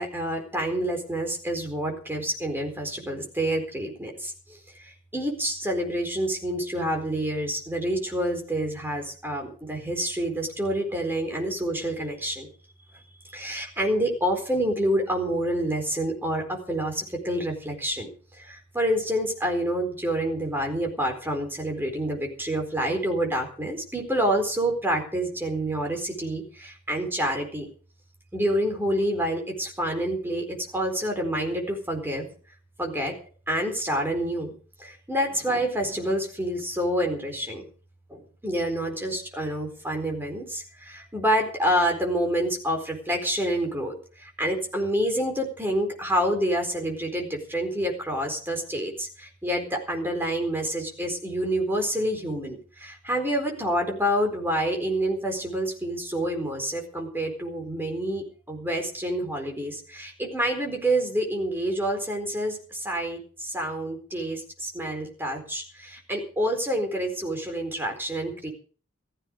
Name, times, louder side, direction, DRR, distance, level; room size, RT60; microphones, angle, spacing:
voice 1, 0.0-4.3 5.1-12.5 13.3-18.1 18.4-27.7 28.3-32.2 32.8-33.1 33.5-34.5 34.8-37.6 38.1-68.5, right 1 dB, 10° right, 2 dB, 4.3 m, -28 dB
15.5 x 15.0 x 5.1 m, 0.41 s
head